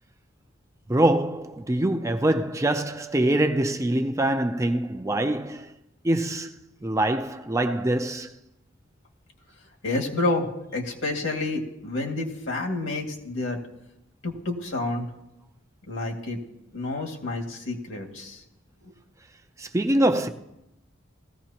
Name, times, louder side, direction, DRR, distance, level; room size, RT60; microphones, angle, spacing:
voice 1, 0.9-5.7 6.0-6.5 6.8-8.3 19.6-20.3, right 1 dB, 15° right, 0.5 m, -24 dB
voice 2, 9.8-13.6 14.2-15.1 15.9-16.4 16.7-18.4, left 2 dB, 70° left, 2.2 m, -29 dB
18.5 x 15.5 x 2.9 m
head